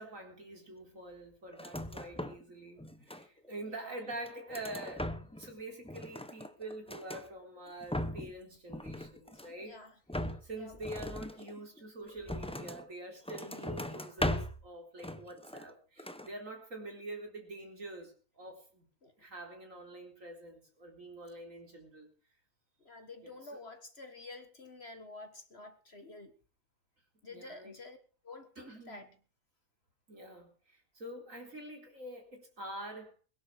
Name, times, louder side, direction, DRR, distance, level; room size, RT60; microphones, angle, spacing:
voice 1, 0.0-9.8 10.4-18.8 19.2-22.1 23.2-23.6 27.3-27.7 28.6-29.1 30.1-33.1, right 1 dB, 50° right, 2 dB, 4.4 m, -46 dB
sound 1, 1.5-2.5 2.8-3.6 4.0-5.5 5.8-7.3 7.7-8.4 8.7-9.6 10.1-12.9 13.2-14.7 15.0-15.7 16.0-16.3, left 1 dB, 5° left, 0.7 m, -39 dB
voice 2, 3.6-4.0 9.3-9.9 10.6-10.9 19.0-19.1 22.8-26.4 27.2-28.0 28.2-29.1, left 2 dB, 40° left, 8 dB, 1.7 m, -50 dB
22.0 x 11.5 x 4.8 m, 0.38 s
omnidirectional pair, 1.7 m